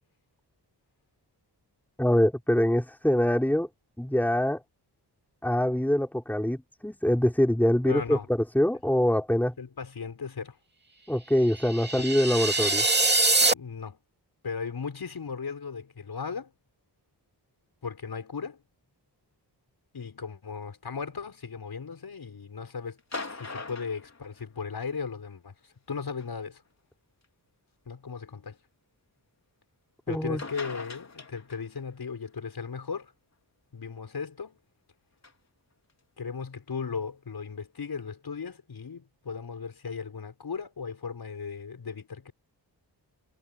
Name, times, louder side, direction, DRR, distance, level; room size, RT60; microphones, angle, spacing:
voice 1, 2.0-3.7 4.0-4.6 5.4-8.2 8.5-9.5 11.1-12.8 30.1-30.4, left 1 dB, 5° left, 3.7 m, -24 dB
voice 2, 7.8-8.3 9.6-10.6 13.5-14.0 14.4-16.5 17.8-18.6 19.9-23.0 23.3-26.6 27.8-28.6 30.1-33.1 33.7-34.6 36.2-42.3, left 5 dB, 65° left, 6.7 m, -36 dB
sound 1, 11.5-13.5, right 3 dB, 25° right, 2.4 m, -24 dB
sound 2, 23.0-24.9 26.2-26.3 27.2-27.3 30.1-30.2 30.4-31.8 35.2-35.3, left 3 dB, 40° left, 3.8 m, -40 dB
wide cardioid pair, 120°, 41 cm